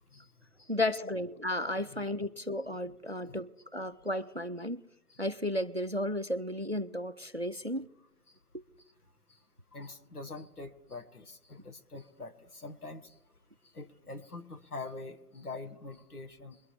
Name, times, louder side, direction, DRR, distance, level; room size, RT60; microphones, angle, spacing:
voice 1, 0.7-4.8 5.2-7.9 8.5-8.6, left 1 dB, 45° right, 0.4 m, -33 dB
voice 2, 9.7-13.2 13.7-16.6, left 3 dB, 75° left, 1.9 m, -45 dB
22.5 x 10.0 x 3.3 m
figure-of-eight pair, 175°, 45 cm